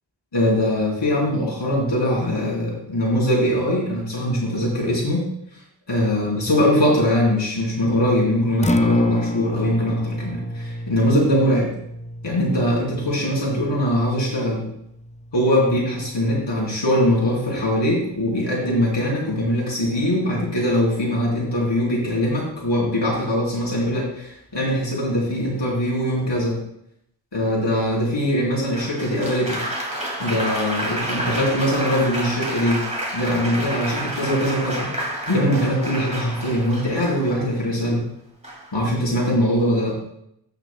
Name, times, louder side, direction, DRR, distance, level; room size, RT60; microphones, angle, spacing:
voice 1, 0.3-5.2 5.9-11.7 12.2-14.7 15.3-26.6 27.3-29.6 30.2-32.8 33.1-34.8 35.3-38.0 38.7-40.0, equal, 85° left, -4 dB, 3.9 m, -21 dB
Acoustic guitar, 8.5-16.7, left 1 dB, 15° left, 0.5 m, -29 dB
Applause, 28.7-37.6 38.4-38.8, right 1 dB, 15° right, 2.2 m, -30 dB
18.5 x 6.3 x 2.2 m, 0.75 s
wide cardioid pair, 70°, 43 cm